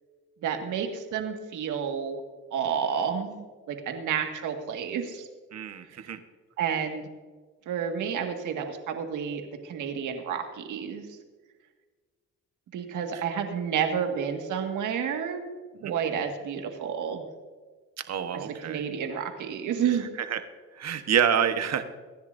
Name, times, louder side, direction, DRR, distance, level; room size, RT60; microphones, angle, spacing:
voice 1, 0.4-2.2 2.5-5.3 6.0-6.1 6.6-7.0 7.7-11.1 12.7-15.5 15.8-17.3 18.3-20.0, right 7 dB, 80° right, 4 dB, 1.9 m, -30 dB
voice 2, 5.5-6.2 13.1-13.2 15.7-15.9 18.0-18.8 20.2-20.4 20.7-21.8, right 8 dB, 60° right, 9 dB, 1.3 m, -27 dB
24.0 x 10.5 x 2.7 m, 1.4 s
cardioid pair, 90°, 30 cm